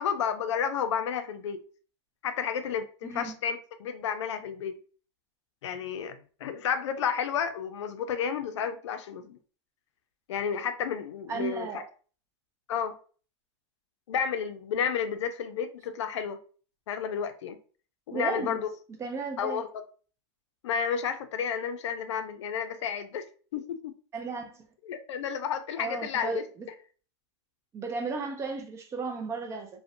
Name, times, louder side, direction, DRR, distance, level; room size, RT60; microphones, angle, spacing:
voice 1, 0.0-1.6 2.2-4.8 5.6-9.4 10.3-11.8 12.7-13.0 14.1-16.4 16.9-17.6 18.1-18.7 19.4-19.8 20.6-23.2 23.5-23.9 24.8-26.4, left 7 dB, 85° left, 0.4 m, -31 dB
voice 2, 3.0-3.3 11.3-11.9 18.1-18.6 19.0-19.6 24.1-24.5 25.8-26.4 27.7-29.7, right 4 dB, 20° right, 0.4 m, -34 dB
2.5 x 2.1 x 2.4 m
supercardioid pair, 135°, 15 cm